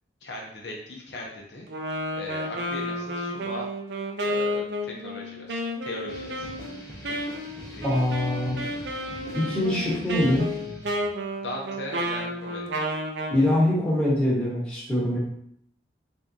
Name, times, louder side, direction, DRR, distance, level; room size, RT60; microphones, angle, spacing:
voice 1, 0.2-1.7 2.1-3.7 4.2-6.5 7.7-7.9 11.4-12.8, left 1 dB, 65° left, -1 dB, 0.7 m, -38 dB
Wind instrument woodwind instrument, 1.7-13.4, equal, 65° right, 0.5 m, -31 dB
sound 1, 6.1-11.1, equal, 20° left, 0.7 m, -42 dB
voice 2, 7.8-8.6 9.3-10.5 13.3-15.2, left 1 dB, 5° left, -7 dB, 1.1 m, -23 dB
3.6 x 3.5 x 2.7 m, 0.69 s
head